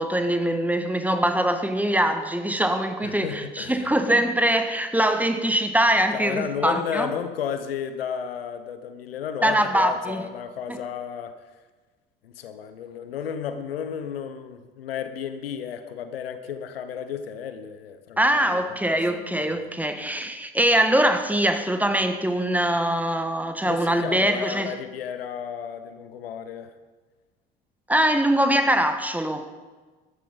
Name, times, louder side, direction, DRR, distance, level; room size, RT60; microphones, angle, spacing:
voice 1, 0.0-7.1 9.4-10.2 10.7-10.8 18.2-24.7 27.9-29.5, right 1 dB, 5° right, 7 dB, 1.4 m, -23 dB
voice 2, 3.0-3.9 6.1-11.3 12.2-18.6 19.4-19.7 23.6-26.7, left 8 dB, 75° left, 10 dB, 0.9 m, -33 dB
13.5 x 11.5 x 5.4 m, 1.3 s
figure-of-eight pair, 55°, 30 cm